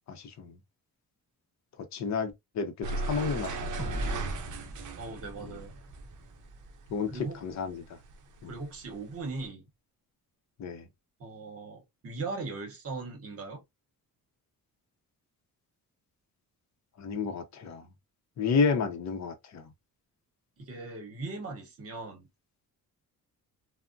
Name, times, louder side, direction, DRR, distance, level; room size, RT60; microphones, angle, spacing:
voice 1, 0.1-0.6 1.9-4.2 5.4-5.5 6.9-7.1 7.4-8.0 8.4-8.5 10.6-10.8 17.0-17.8 18.4-19.7, left 5 dB, 50° left, 0.7 m, -31 dB
sound 1, 2.8-7.5 7.8-9.4, right 2 dB, 55° right, 0.6 m, -37 dB
sound 2, 3.8-7.1, right 1 dB, 10° right, 0.4 m, -40 dB
voice 2, 4.9-5.7 7.1-7.4 8.5-9.6 11.2-13.6 20.6-22.3, right 3 dB, 40° right, 1.0 m, -39 dB
3.4 x 2.1 x 2.5 m
wide cardioid pair, 170°, 36 cm